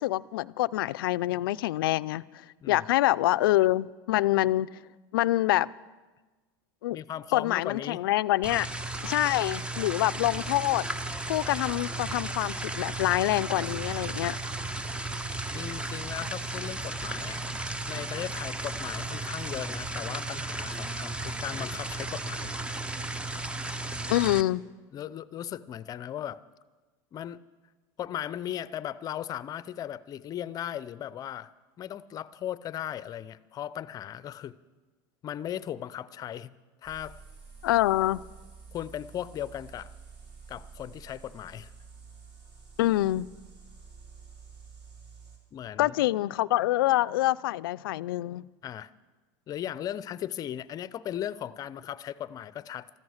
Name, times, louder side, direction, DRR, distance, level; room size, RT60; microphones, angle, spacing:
voice 1, 0.0-2.2 2.7-4.7 5.1-5.7 6.8-7.0 7.3-8.7 9.0-10.8 11.3-14.4 24.1-24.6 37.6-38.2 42.8-43.3 45.8-48.5, left 16 dB, 85° left, 17 dB, 0.4 m, -26 dB
voice 2, 6.9-8.0 15.5-17.4 17.9-22.5 24.9-26.4 27.1-27.4 28.0-31.5 31.8-34.6 35.2-36.5 36.8-37.2 38.7-39.9 40.5-41.7 45.5-46.0 48.6-48.9 49.5-52.9, left 11 dB, 35° left, 18 dB, 0.5 m, -37 dB
sound 1, 8.4-24.4, right 2 dB, 10° right, 0.6 m, -34 dB
sound 2, 36.8-45.4, right 5 dB, 50° right, 3.6 m, -50 dB
14.0 x 14.0 x 6.4 m, 1.3 s
supercardioid pair, 120°, 12 cm